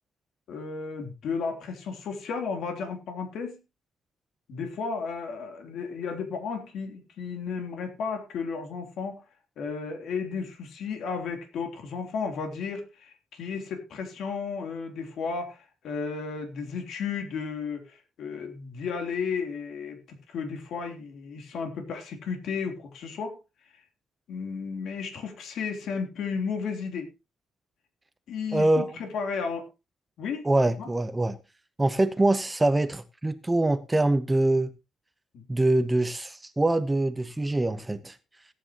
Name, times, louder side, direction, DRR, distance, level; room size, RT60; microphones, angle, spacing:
voice 1, 0.5-3.6 4.5-9.2 9.6-23.4 24.3-27.1 28.3-29.7 30.2-30.4 30.8-30.9 35.3-35.4, left 5 dB, 70° left, 3.3 m, -33 dB
voice 2, 28.5-29.0 30.4-31.4 31.8-34.7 35.5-38.2, right 2 dB, 15° right, 0.9 m, -24 dB
17.5 x 9.7 x 3.0 m
cardioid pair, 90°, 0 cm